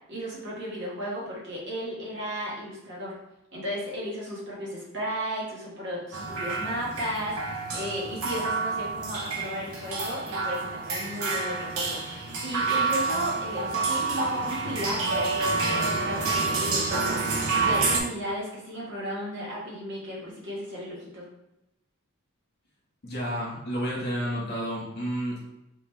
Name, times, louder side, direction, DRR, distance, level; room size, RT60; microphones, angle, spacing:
voice 1, 0.1-3.1 3.5-21.2, equal, 60° right, -5 dB, 1.5 m, -35 dB
sound 1, 6.1-18.0, right 4 dB, 85° right, 0.7 m, -28 dB
voice 2, 23.0-25.4, equal, 50° left, -4 dB, 1.5 m, -31 dB
4.0 x 3.5 x 3.2 m, 0.92 s
head